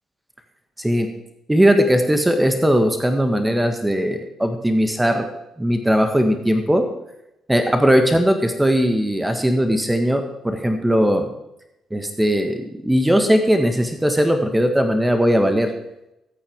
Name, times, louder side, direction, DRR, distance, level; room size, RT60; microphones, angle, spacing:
voice 1, 0.8-1.1 1.5-5.3 5.6-6.8 7.5-11.3 11.9-15.7, equal, 10° right, 6 dB, 1.6 m, -19 dB
22.5 x 8.8 x 3.7 m, 0.87 s
figure-of-eight pair, 40°, 0 cm